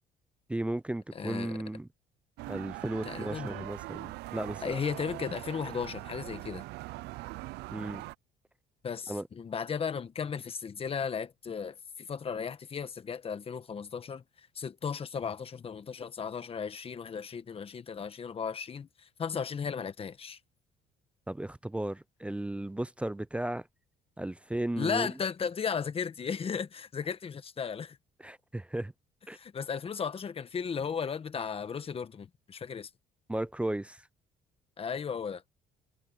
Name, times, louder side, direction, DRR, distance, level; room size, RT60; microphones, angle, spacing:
voice 1, 0.5-1.9 2.5-4.7 7.7-8.0 9.1-9.3 21.3-23.7 24.2-25.1 28.2-28.9 29.3-29.4 33.3-34.1, right 1 dB, 5° right, 0.5 m, -35 dB
voice 2, 1.1-1.6 3.0-3.7 4.6-6.6 8.8-14.2 14.5-20.4 24.8-28.0 29.3-32.9 34.8-35.4, left 6 dB, 35° left, 1.3 m, -35 dB
sound 1, 2.4-8.1, right 20 dB, 85° right, 0.4 m, -41 dB
cardioid pair, 110°, 17 cm